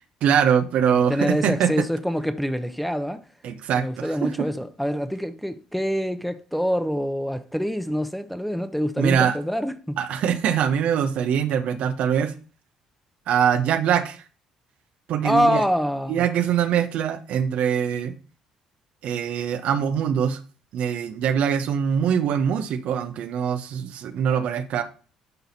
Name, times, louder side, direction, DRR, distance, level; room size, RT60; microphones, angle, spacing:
voice 1, 0.2-1.7 3.4-4.5 9.0-9.4 10.0-12.3 13.3-14.2 15.1-15.6 16.1-18.1 19.0-20.4 20.7-24.8, right 8 dB, 65° right, 0.8 m, -23 dB
voice 2, 0.8-3.2 3.7-10.0 15.2-16.3, equal, ahead, 0.9 m, -25 dB
10.5 x 4.0 x 4.2 m
hypercardioid pair, 55°, 2 cm